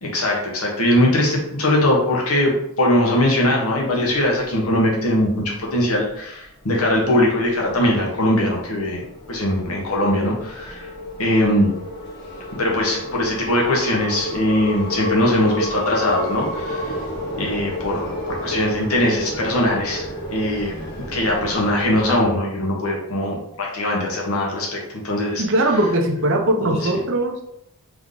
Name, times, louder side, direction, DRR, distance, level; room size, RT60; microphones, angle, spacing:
voice 1, 0.0-10.9 11.2-11.7 12.5-17.0 17.4-20.0 20.3-20.7 21.1-25.4 26.6-26.9, left 1 dB, 75° left, -2 dB, 1.2 m, -21 dB
sound 1, 4.1-4.8 5.1-5.3 5.7-6.1 6.7-7.0 7.5-22.2, equal, 50° left, 1.3 m, -31 dB
voice 2, 25.4-27.4, right 1 dB, 55° right, 3 dB, 0.7 m, -20 dB
3.5 x 3.5 x 3.8 m, 0.77 s
head